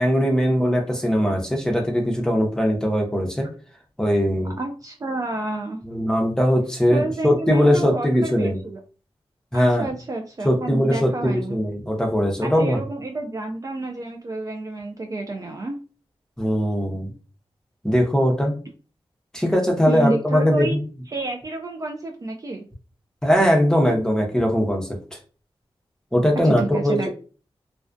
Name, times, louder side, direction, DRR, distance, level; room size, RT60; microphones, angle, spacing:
voice 1, 0.0-3.5 4.0-4.5 5.8-8.6 9.5-9.9 10.4-12.8 16.4-17.1 17.8-18.5 19.3-20.8 23.2-25.0 26.1-27.1, equal, 5° left, 1 dB, 0.7 m, -20 dB
voice 2, 4.6-5.8 6.9-8.8 9.5-11.6 12.4-15.8 19.9-20.8 21.1-22.7 26.4-27.1, right 2 dB, 35° right, 2 dB, 0.4 m, -29 dB
2.3 x 2.2 x 2.5 m, 0.36 s
cardioid pair, 60°, 10 cm